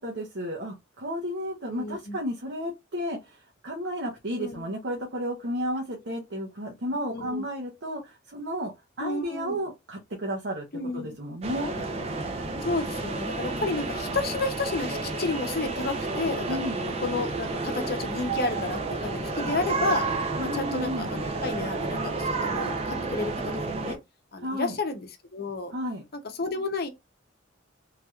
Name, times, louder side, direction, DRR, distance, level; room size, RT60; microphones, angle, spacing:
voice 1, 0.0-8.7 9.0-10.7 10.9-11.7 16.5-16.8 20.4-21.1 24.4-24.8 25.7-26.0, equal, 60° right, 0.8 m, -32 dB
voice 2, 1.7-2.2 4.4-4.7 7.1-7.4 9.0-9.6 10.7-11.1 11.8-11.9 12.6-16.5 17.0-20.1 20.4-23.3 23.7-24.0 24.3-25.7 26.4-26.9, left 3 dB, 50° left, 0.7 m, -31 dB
sound 1, 11.4-24.0, right 3 dB, 30° right, 0.6 m, -31 dB
3.3 x 2.9 x 2.3 m
head